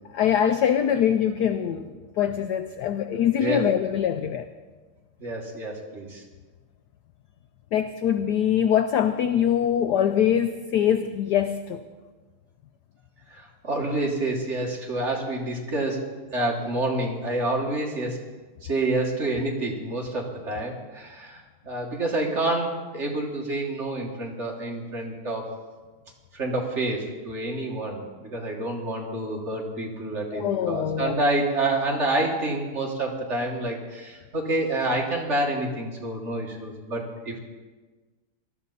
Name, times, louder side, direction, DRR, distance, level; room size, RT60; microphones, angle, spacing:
voice 1, 0.1-4.5 7.7-11.8 30.3-31.2, left 9 dB, 75° left, 10 dB, 0.9 m, -23 dB
voice 2, 5.2-6.2 13.3-18.2 18.6-25.6 26.3-37.4, right 2 dB, 35° right, -1 dB, 2.1 m, -28 dB
19.0 x 13.0 x 4.1 m, 1.3 s
omnidirectional pair, 2.3 m